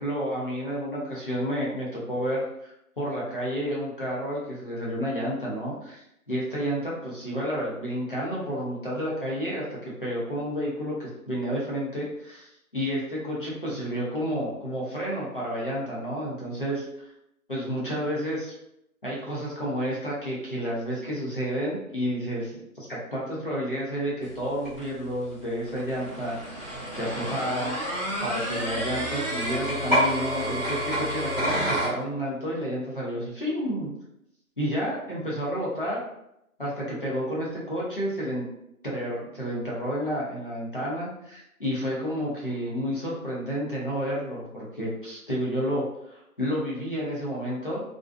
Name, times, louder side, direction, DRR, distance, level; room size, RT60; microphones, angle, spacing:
voice 1, 0.0-17.1 17.5-18.5 19.0-33.9 34.6-36.0 36.6-38.5 38.8-47.8, equal, 35° left, -6 dB, 0.7 m, -30 dB
sound 1, 24.2-31.9, equal, 10° left, 1.1 m, -29 dB
2.5 x 2.3 x 2.3 m, 0.81 s
figure-of-eight pair, 155°, 45 cm